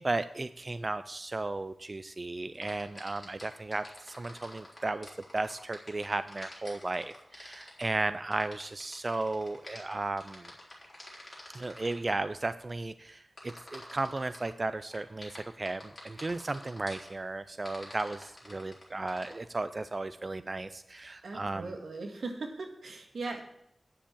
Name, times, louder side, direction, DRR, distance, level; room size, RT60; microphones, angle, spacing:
voice 1, 0.0-5.1 5.3-10.5 11.5-21.8, right 2 dB, 35° right, 12 dB, 0.4 m, -35 dB
sound 1, 2.5-12.1 13.4-14.5 14.9-17.1 17.7-19.3, left 1 dB, 20° left, 4.1 m, -48 dB
voice 2, 21.2-23.4, right 3 dB, 90° right, 3 dB, 1.9 m, -39 dB
10.0 x 7.2 x 7.2 m, 0.75 s
wide cardioid pair, 110°, 0 cm